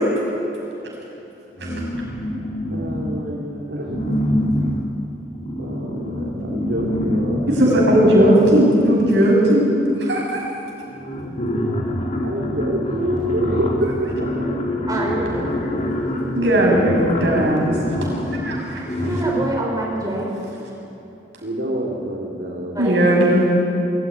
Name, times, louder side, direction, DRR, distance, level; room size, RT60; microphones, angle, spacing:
sound 1, 1.6-3.4 3.8-9.5 10.4-10.5 10.8-19.7, left 1 dB, 45° left, 2.5 m, -26 dB
voice 1, 2.7-4.2 5.6-8.0 12.2-14.8 21.4-22.8, right 1 dB, 65° right, -3 dB, 2.6 m, -27 dB
voice 2, 7.5-10.4 16.3-17.7 18.3-18.8 22.8-23.4, right 1 dB, 90° right, -2 dB, 6.8 m, -17 dB
voice 3, 14.9-15.8 19.0-20.3 22.7-22.9, right 1 dB, 20° right, -2 dB, 4.9 m, -25 dB
23.0 x 15.0 x 9.7 m, 2.8 s
head